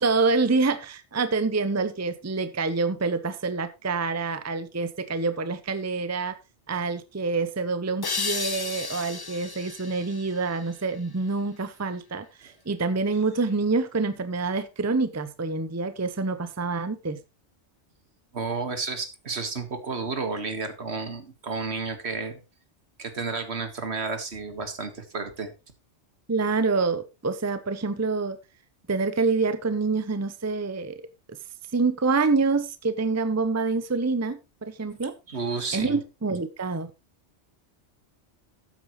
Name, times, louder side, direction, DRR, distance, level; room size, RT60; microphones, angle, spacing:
voice 1, 0.0-6.3 6.7-17.2 26.3-28.4 28.9-31.0 31.7-35.1 35.7-36.9, right 4 dB, 15° right, 11 dB, 0.7 m, -26 dB
sound 1, 8.0-11.4, left 4 dB, 30° left, 0.4 m, -34 dB
voice 2, 18.3-22.4 23.0-25.5 35.3-36.0, right 4 dB, 70° right, 8 dB, 2.0 m, -31 dB
12.5 x 9.0 x 3.1 m, 0.27 s
omnidirectional pair, 1.2 m